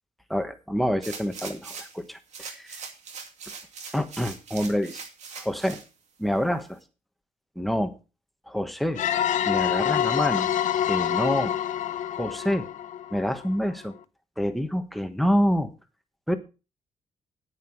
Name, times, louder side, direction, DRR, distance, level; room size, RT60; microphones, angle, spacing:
voice 1, 0.3-2.8 3.9-5.0 5.4-5.8 6.2-6.8 7.6-7.9 8.5-9.0 9.4-10.5 10.9-11.6 12.2-12.7 13.1-13.9 14.4-15.7 16.3-16.4, equal, ahead, 7 dB, 1.2 m, -27 dB
sound 1, 1.0-2.0 2.3-5.9 6.4-6.5, right 5 dB, 65° right, 2.4 m, -41 dB
sound 2, 9.0-13.5, left 10 dB, 75° left, 0.8 m, -26 dB
9.7 x 9.3 x 4.6 m, 0.31 s
wide cardioid pair, 160°, 13 cm